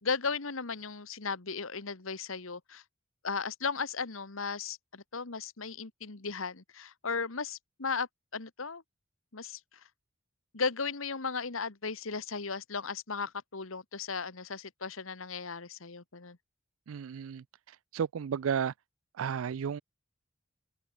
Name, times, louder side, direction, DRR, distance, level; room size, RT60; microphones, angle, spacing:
voice 1, 0.0-2.8 3.2-8.8 9.3-9.6 10.5-16.4, left 5 dB, 80° left, 1.6 m, -36 dB
voice 2, 16.9-17.4 17.9-18.7 19.2-19.8, right 7 dB, 80° right, 0.4 m, -32 dB
head